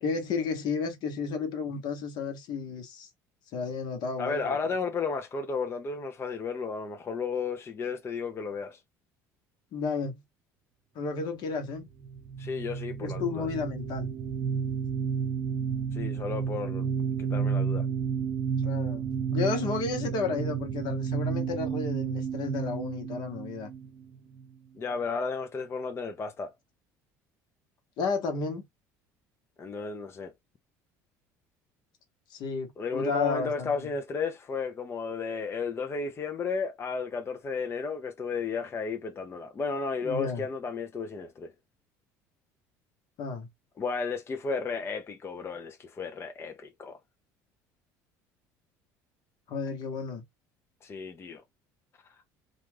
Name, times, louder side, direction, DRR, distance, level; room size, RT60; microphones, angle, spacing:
voice 1, 0.0-3.1 3.5-4.6 9.7-10.2 10.9-11.9 13.0-14.1 18.6-23.7 28.0-28.6 32.3-33.7 40.0-40.4 43.2-43.5 49.5-50.2, left 4 dB, 60° left, 1.0 m, -32 dB
voice 2, 4.2-8.8 12.4-13.5 15.9-17.9 24.8-26.5 29.6-30.3 32.8-41.5 43.8-47.0 50.8-51.4, left 4 dB, 30° left, 0.5 m, -33 dB
sound 1, 12.0-24.4, right 6 dB, 70° right, 0.6 m, -31 dB
2.4 x 2.3 x 3.2 m
supercardioid pair, 85°, 8 cm